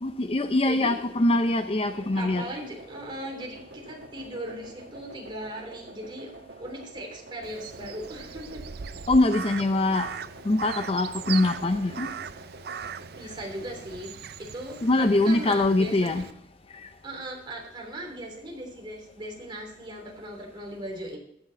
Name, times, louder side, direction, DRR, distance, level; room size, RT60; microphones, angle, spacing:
voice 1, 0.0-2.4 9.1-10.1 10.4-12.1 14.8-16.2 16.7-16.9, left 2 dB, 35° left, 0.6 m, -23 dB
voice 2, 0.6-1.0 2.1-6.3 6.6-8.6 13.2-16.2 17.0-21.2, right 1 dB, 30° right, 3.3 m, -38 dB
sound 1, 1.8-14.0, right 2 dB, 90° right, 1.3 m, -48 dB
Crow, 7.4-16.3, right 7 dB, 60° right, 0.5 m, -39 dB
14.5 x 6.6 x 4.2 m
head